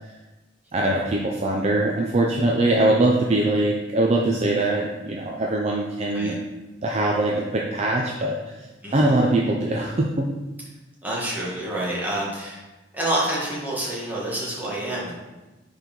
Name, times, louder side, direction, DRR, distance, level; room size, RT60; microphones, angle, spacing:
voice 1, 0.7-6.4 6.8-8.7 8.9-10.3, right 2 dB, 35° right, -1 dB, 0.5 m, -22 dB
voice 2, 8.8-9.1 11.0-12.6 12.9-15.1, right 1 dB, 10° right, -6 dB, 1.4 m, -28 dB
4.6 x 4.0 x 5.2 m, 1.1 s
head